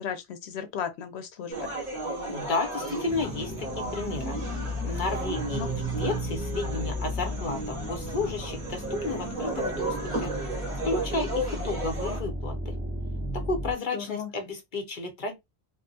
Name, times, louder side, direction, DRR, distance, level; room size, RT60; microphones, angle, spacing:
voice 1, 0.0-1.7 5.5-5.7 13.9-14.3, left 8 dB, 75° left, 0.9 m, -35 dB
sound 1, 1.5-12.2, right 1 dB, 45° right, 1.3 m, -34 dB
voice 2, 2.3-4.4 4.8-10.3 10.8-12.8 13.3-15.3, left 3 dB, 50° left, 0.9 m, -32 dB
sound 2, 3.1-13.7, equal, 5° right, 0.8 m, -34 dB
2.6 x 2.3 x 2.6 m
omnidirectional pair, 1.1 m